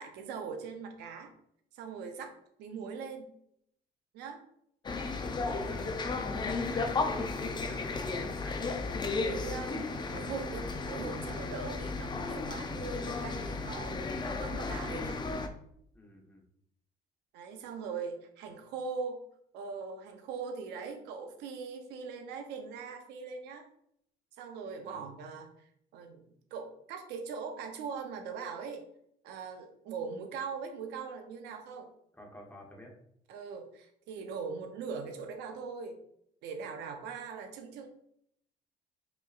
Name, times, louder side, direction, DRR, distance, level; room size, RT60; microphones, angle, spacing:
voice 1, 0.0-1.3 1.7-2.3 2.6-3.3 4.1-4.4 5.4-5.9 9.1-15.3 17.3-19.2 19.5-23.7 24.4-26.2 26.5-28.8 29.2-31.9 33.3-36.0 36.4-37.9, right 5 dB, 85° right, 5 dB, 0.7 m, -41 dB
sound 1, 4.8-15.5, left 3 dB, 25° left, 0.5 m, -34 dB
voice 2, 5.6-8.6 15.9-16.4 24.8-25.1 32.1-32.9, equal, 10° left, 0 dB, 0.9 m, -48 dB
5.0 x 3.0 x 2.5 m, 0.72 s
cardioid pair, 110°, 17 cm